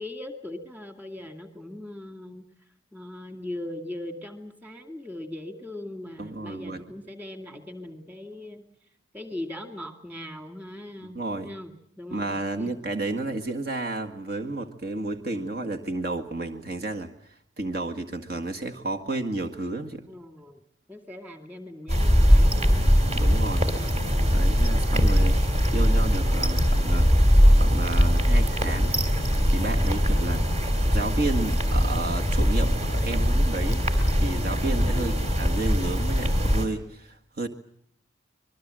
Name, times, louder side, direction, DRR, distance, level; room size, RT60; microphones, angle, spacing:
voice 1, 0.0-2.5 2.9-8.6 9.1-12.7 20.1-20.6 20.9-23.4 24.2-24.7 34.8-35.3, left 1 dB, 10° right, 6 dB, 2.3 m, -40 dB
voice 2, 6.2-6.8 11.0-11.5 12.1-17.1 17.6-20.1 23.1-23.7 24.3-25.4 25.7-27.1 27.5-30.5 30.9-33.9 34.2-37.5, right 2 dB, 50° right, 4 dB, 1.9 m, -32 dB
sound 1, 21.9-36.6, equal, 35° right, 3.3 m, -21 dB
26.0 x 21.5 x 7.7 m, 0.67 s
head